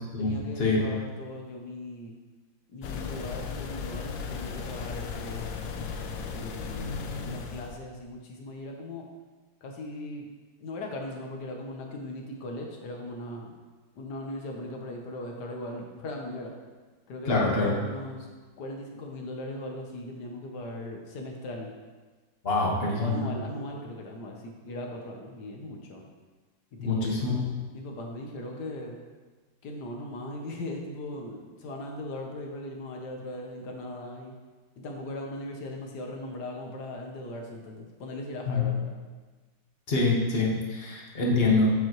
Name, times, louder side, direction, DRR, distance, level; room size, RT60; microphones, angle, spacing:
voice 1, 0.2-2.1 2.7-5.6 6.3-9.0 9.6-10.3 10.6-13.5 14.0-16.5 17.1-18.3 18.6-21.7 22.9-26.0 26.7-27.1 27.7-29.0 29.6-34.3 34.8-38.9, left 1 dB, 65° left, 1 dB, 1.5 m, -39 dB
sound 1, 2.8-7.8, left 5 dB, 80° left, 1.3 m, -36 dB
voice 2, 17.3-17.7 22.4-23.3 26.8-27.3 38.5-38.6 39.9-41.7, left 3 dB, 35° left, -3 dB, 1.4 m, -25 dB
7.7 x 7.4 x 3.0 m, 1.3 s
omnidirectional pair, 2.0 m